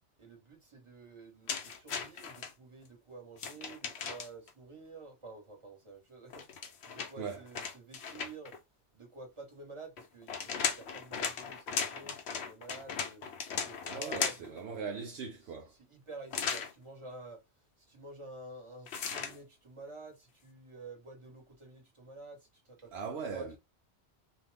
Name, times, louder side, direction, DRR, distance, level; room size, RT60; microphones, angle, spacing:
voice 1, 0.2-8.6 8.9-13.2 13.6-14.7 15.7-17.4 17.8-22.9 23.3-23.6, right 3 dB, 25° right, 1.3 m, -50 dB
sound 1, 1.5-2.5 3.4-4.5 6.3-8.6 10.0-14.6 16.3-16.7 18.9-19.4, left 6 dB, 70° left, 0.9 m, -37 dB
voice 2, 13.9-15.7 22.9-23.6, right 5 dB, 70° right, 0.8 m, -40 dB
2.7 x 2.3 x 3.4 m
omnidirectional pair, 1.1 m